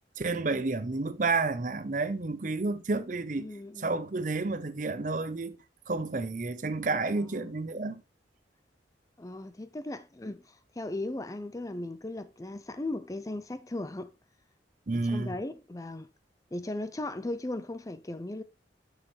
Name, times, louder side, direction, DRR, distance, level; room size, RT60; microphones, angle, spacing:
voice 1, 0.2-3.5 3.8-8.0 14.9-15.4, right 3 dB, 45° right, 0.6 m, -30 dB
voice 2, 3.4-4.0 7.1-7.5 9.2-14.1 14.9-16.1 16.5-18.4, left 2 dB, 20° left, 0.4 m, -37 dB
7.1 x 6.5 x 3.1 m
head